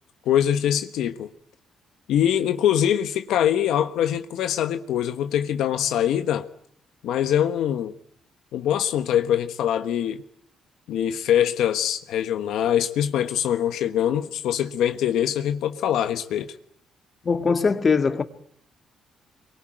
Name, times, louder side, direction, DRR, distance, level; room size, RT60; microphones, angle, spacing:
voice 1, 0.2-1.3 2.1-6.5 7.0-7.9 8.5-10.2 10.9-16.5, left 10 dB, 85° left, 1.2 m, -23 dB
voice 2, 17.2-18.2, left 5 dB, 35° left, 2.0 m, -21 dB
26.5 x 24.0 x 9.0 m
cardioid pair, 90°, 0 cm